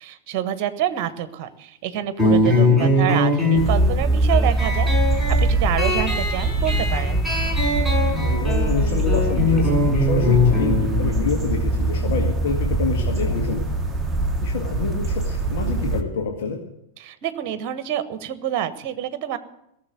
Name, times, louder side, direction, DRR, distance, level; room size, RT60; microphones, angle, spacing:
voice 1, 0.0-7.2 17.0-19.4, right 11 dB, 45° right, 12 dB, 1.2 m, -27 dB
sound 1, 2.2-13.3, left 2 dB, 5° left, 6.5 m, -23 dB
voice 2, 2.6-2.9 8.1-13.6 14.4-16.6, left 5 dB, 55° left, 1 dB, 2.0 m, -27 dB
sound 2, 3.6-16.0, right 1 dB, 10° right, 1.5 m, -22 dB
17.5 x 7.4 x 9.1 m, 0.80 s
figure-of-eight pair, 90°, 0 cm